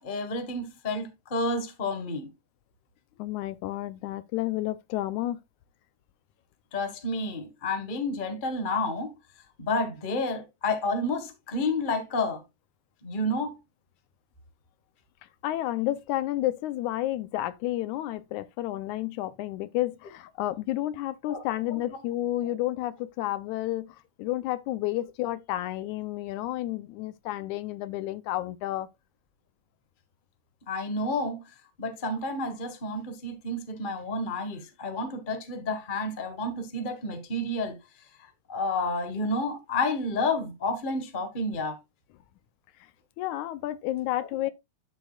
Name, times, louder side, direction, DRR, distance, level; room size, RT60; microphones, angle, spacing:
voice 1, 0.0-2.3 6.7-9.1 9.6-12.4 13.0-13.6 21.3-21.4 21.7-21.8 30.7-31.4 31.8-37.8 38.5-41.8, left 2 dB, 25° left, 1.0 m, -30 dB
voice 2, 3.2-5.4 15.4-28.9 43.2-44.5, left 15 dB, 90° left, 2.2 m, -31 dB
11.5 x 6.6 x 2.4 m
omnidirectional pair, 3.3 m